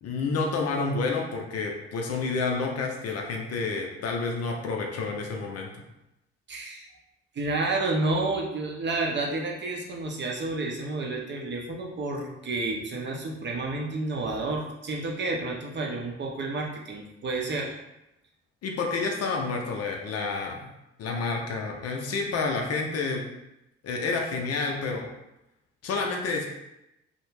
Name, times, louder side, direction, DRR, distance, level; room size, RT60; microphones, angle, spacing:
voice 1, 0.0-5.7 18.6-20.7 21.0-23.2 23.8-25.1 25.8-26.4, left 4 dB, 50° left, 1 dB, 0.6 m, -29 dB
voice 2, 6.5-6.9 7.3-17.7, right 2 dB, 35° right, -1 dB, 0.6 m, -30 dB
2.3 x 2.1 x 3.2 m, 0.89 s
hypercardioid pair, 40°, 31 cm